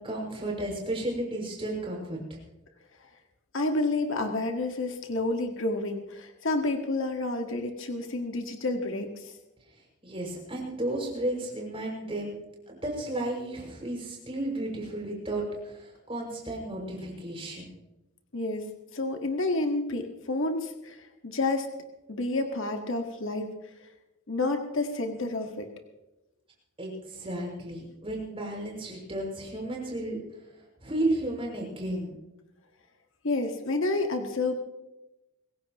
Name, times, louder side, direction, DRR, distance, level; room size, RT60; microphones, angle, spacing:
voice 1, 0.0-2.4 10.0-12.4 12.7-17.8 26.8-30.2 30.8-32.2, right 1 dB, 25° right, -1 dB, 6.2 m, -33 dB
voice 2, 3.5-9.3 18.3-21.7 22.1-23.5 24.3-25.7 33.2-34.6, left 2 dB, 60° left, 4 dB, 1.7 m, -29 dB
25.5 x 16.0 x 3.1 m, 0.96 s
head